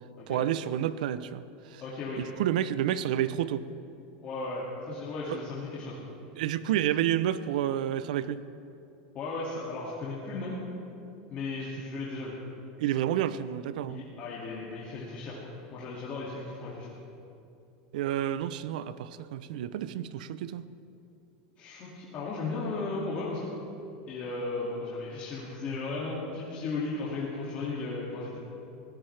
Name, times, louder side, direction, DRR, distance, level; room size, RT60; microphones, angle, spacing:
voice 1, 0.3-1.8 2.2-3.7 5.3-5.4 6.4-8.4 12.8-14.0 17.9-20.7, right 11 dB, 75° right, 15 dB, 0.6 m, -30 dB
voice 2, 1.8-2.2 4.2-6.0 9.1-10.6 11.3-12.3 13.9-15.4 15.7-16.9 21.6-23.5 24.1-28.4, left 3 dB, 30° left, -7 dB, 2.3 m, -35 dB
23.0 x 16.5 x 3.4 m, 2.8 s
supercardioid pair, 170°, 4 cm